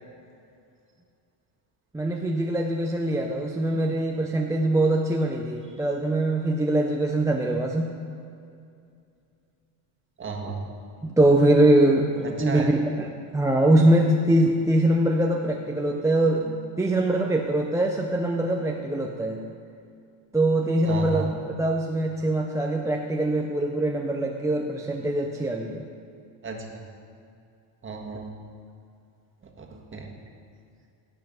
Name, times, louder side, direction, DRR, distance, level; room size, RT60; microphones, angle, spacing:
voice 1, 1.9-7.9 11.0-19.4 20.3-25.8, right 1 dB, 5° right, 0 dB, 0.5 m, -23 dB
voice 2, 10.2-10.6 12.2-12.7 20.8-21.3 26.4-26.8 27.8-28.3 29.6-30.1, right 5 dB, 25° right, 1 dB, 1.6 m, -33 dB
16.5 x 5.7 x 5.4 m, 2.5 s
cardioid pair, 120°, 47 cm